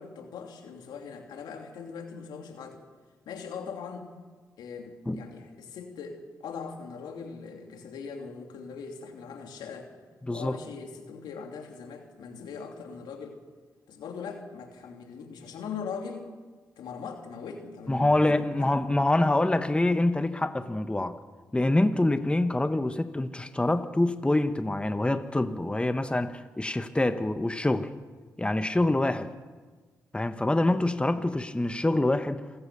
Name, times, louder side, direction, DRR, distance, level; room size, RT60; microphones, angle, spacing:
voice 1, 0.0-2.8 3.3-4.1 4.6-9.9 10.3-13.4 13.9-16.3 16.8-18.9 31.0-31.2, left 5 dB, 85° left, 3 dB, 3.0 m, -41 dB
voice 2, 17.9-21.2 21.5-27.9 28.4-29.3 30.1-32.4, left 2 dB, 15° left, 10 dB, 1.3 m, -25 dB
27.5 x 16.0 x 7.0 m, 1.4 s
cardioid pair, 60°, 7 cm